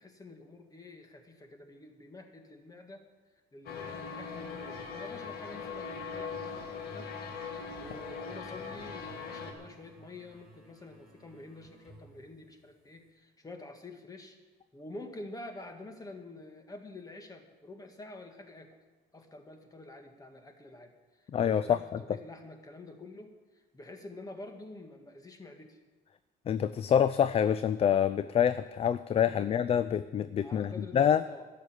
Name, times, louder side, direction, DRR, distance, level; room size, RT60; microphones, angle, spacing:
voice 1, 0.0-3.1 3.5-7.1 7.5-14.4 14.7-18.8 19.1-25.8 29.3-29.6 30.4-31.5, left 2 dB, 20° left, 5 dB, 1.8 m, -48 dB
sound 1, 3.7-9.5, left 5 dB, 65° left, 1.9 m, -40 dB
sound 2, 7.7-13.1, right 1 dB, ahead, 4.8 m, -58 dB
voice 2, 21.3-21.8 26.5-31.2, left 8 dB, 35° left, 14 dB, 0.4 m, -26 dB
12.5 x 6.8 x 9.4 m, 1.2 s
cardioid pair, 110°, 17 cm